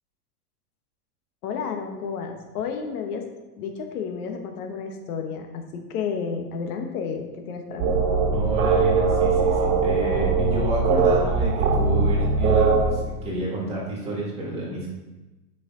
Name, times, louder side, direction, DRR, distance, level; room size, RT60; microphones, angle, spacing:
voice 1, 1.4-3.2 3.6-8.0, left 6 dB, 75° left, 4 dB, 1.3 m, -31 dB
sound 1, 7.8-12.8, right 4 dB, 65° right, 1.6 m, -21 dB
voice 2, 8.3-14.9, right 1 dB, 15° right, -6 dB, 2.2 m, -30 dB
8.2 x 6.1 x 3.8 m, 1.1 s
supercardioid pair, 165°, 45 cm